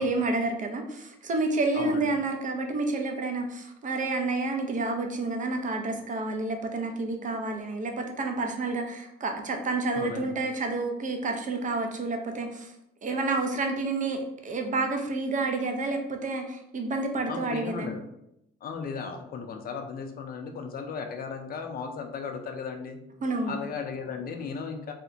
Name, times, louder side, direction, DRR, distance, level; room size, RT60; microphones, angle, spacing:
voice 1, 0.0-12.7 13.0-17.9 23.2-23.6, right 3 dB, 40° right, 4 dB, 0.5 m, -29 dB
voice 2, 1.7-2.2 10.0-10.3 17.3-18.0 18.6-23.0 23.5-24.9, left 5 dB, 50° left, 4 dB, 0.4 m, -36 dB
2.8 x 2.0 x 2.6 m, 0.80 s
cardioid pair, 90°, 20 cm